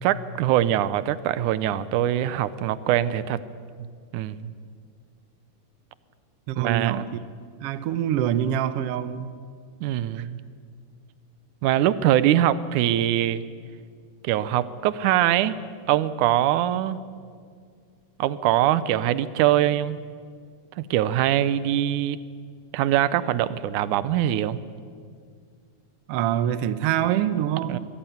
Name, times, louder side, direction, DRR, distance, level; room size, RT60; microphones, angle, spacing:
voice 1, 0.0-3.4 4.1-4.5 6.6-7.1 9.8-10.4 11.6-13.4 14.2-15.6 15.9-17.0 18.2-20.0 20.8-22.2 22.7-24.6 27.7-27.8, right 12 dB, 85° right, 16 dB, 2.2 m, -23 dB
voice 2, 6.5-7.1 7.6-9.3 10.2-10.3 26.1-27.8, right 10 dB, 70° right, 13 dB, 1.6 m, -25 dB
23.0 x 15.0 x 9.3 m, 2.1 s
omnidirectional pair, 3.4 m